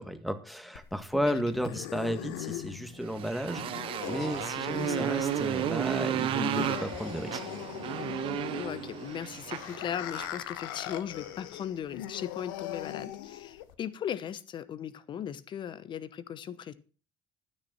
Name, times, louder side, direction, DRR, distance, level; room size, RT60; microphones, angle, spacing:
voice 1, 0.0-7.4, equal, ahead, 1.8 m, -33 dB
sound 1, 0.7-13.7, left 13 dB, 65° left, 1.1 m, -40 dB
Motorcycle, 3.0-10.4, right 11 dB, 50° right, 1.1 m, -33 dB
voice 2, 4.7-5.1 8.5-16.7, left 9 dB, 45° left, 1.0 m, -38 dB
13.0 x 6.6 x 6.2 m
figure-of-eight pair, 55°, 12 cm